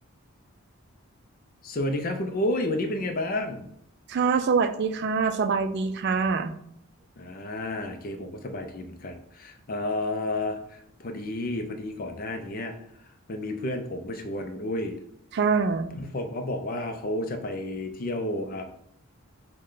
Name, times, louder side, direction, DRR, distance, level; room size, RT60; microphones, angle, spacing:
voice 1, 1.6-3.7 7.2-12.7 13.3-15.0 15.9-18.6, left 1 dB, 40° left, 6 dB, 0.5 m, -31 dB
voice 2, 4.1-6.5 15.3-15.9, right 5 dB, 50° right, 10 dB, 0.3 m, -24 dB
5.3 x 2.2 x 3.8 m, 0.71 s
head